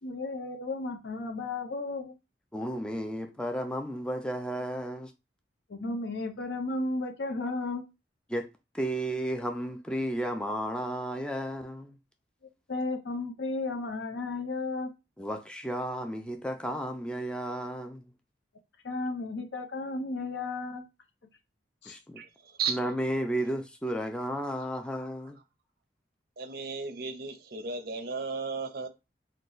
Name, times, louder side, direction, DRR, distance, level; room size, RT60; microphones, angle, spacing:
voice 1, 0.0-2.1 5.7-7.8 12.7-14.9 18.8-20.9 21.8-21.9, left 2 dB, 80° left, 0.7 m, -34 dB
voice 2, 2.5-5.1 8.3-8.5 8.7-12.0 15.2-18.1 21.9-22.2 22.7-25.4, right 1 dB, 5° left, 0.4 m, -33 dB
voice 3, 22.2-22.8 26.4-28.9, right 5 dB, 55° right, 0.5 m, -34 dB
2.9 x 2.3 x 3.8 m
head